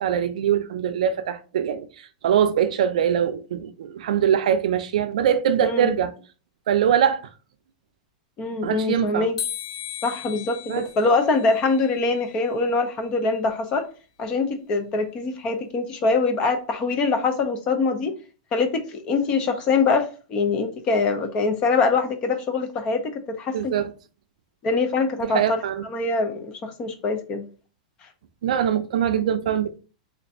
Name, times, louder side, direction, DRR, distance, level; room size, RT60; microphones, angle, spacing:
voice 1, 0.0-1.9 2.2-6.1 6.7-7.3 8.6-9.3 10.7-10.9 23.5-23.9 25.2-25.8 28.4-29.8, right 9 dB, 65° right, 0.5 m, -22 dB
voice 2, 5.6-5.9 8.4-9.4 10.0-13.9 14.2-18.1 18.5-23.7 24.6-27.5, left 4 dB, 20° left, 0.4 m, -24 dB
sound 1, 9.4-12.5, left 9 dB, 60° left, 1.0 m, -36 dB
3.3 x 2.5 x 4.1 m
supercardioid pair, 175°, 4 cm